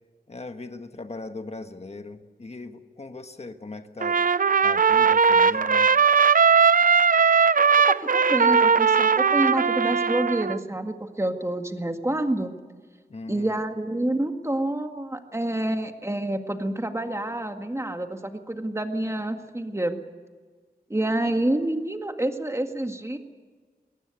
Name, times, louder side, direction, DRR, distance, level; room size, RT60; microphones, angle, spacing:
voice 1, 0.3-4.2 4.6-5.9 13.1-13.6, left 3 dB, 40° left, 7 dB, 1.4 m, -39 dB
Trumpet, 4.0-10.6, right 6 dB, 55° right, 0.6 m, -19 dB
voice 2, 7.7-12.5 13.3-20.0 20.9-23.2, right 1 dB, 15° right, 6 dB, 1.9 m, -28 dB
22.5 x 18.0 x 8.2 m, 1.5 s
wide cardioid pair, 85°, 17 cm